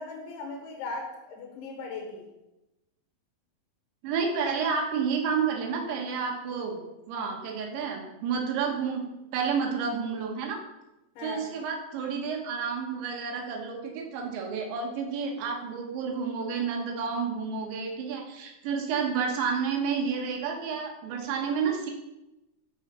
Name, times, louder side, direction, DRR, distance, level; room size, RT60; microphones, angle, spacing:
voice 1, 0.0-2.3 11.2-11.5, left 3 dB, 80° left, 1 dB, 4.0 m, -38 dB
voice 2, 4.0-6.8 7.1-9.1 9.3-10.6 11.2-21.9, right 6 dB, 85° right, 1 dB, 3.9 m, -30 dB
12.5 x 5.0 x 7.1 m, 0.97 s
omnidirectional pair, 5.2 m